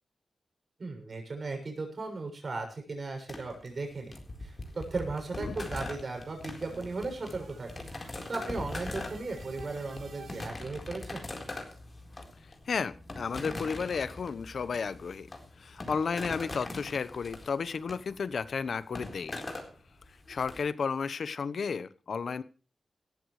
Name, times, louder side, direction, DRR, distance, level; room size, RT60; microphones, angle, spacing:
voice 1, 0.8-4.1 4.4-7.7 8.3-11.3, right 3 dB, 50° right, 4 dB, 6.8 m, -36 dB
sound 1, 3.3-20.6, left 2 dB, 35° left, 4.1 m, -42 dB
sound 2, 4.1-10.5, right 4 dB, 75° right, 3.8 m, -54 dB
voice 2, 12.7-15.3 15.6-19.5 20.3-22.4, left 5 dB, 70° left, 16 dB, 1.0 m, -33 dB
18.0 x 14.5 x 3.3 m, 0.38 s
wide cardioid pair, 105°, 0 cm